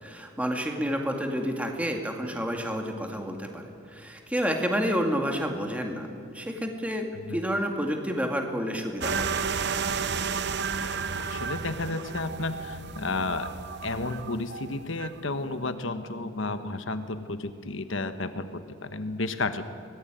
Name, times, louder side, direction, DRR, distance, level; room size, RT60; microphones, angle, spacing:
voice 1, 0.0-6.1 6.3-9.4, equal, 5° right, 3 dB, 2.3 m, -29 dB
sound 1, 9.0-15.2, right 5 dB, 55° right, 0.9 m, -32 dB
voice 2, 10.8-13.5 13.8-19.7, left 2 dB, 65° left, 9 dB, 1.3 m, -32 dB
24.0 x 19.5 x 9.2 m, 2.5 s
head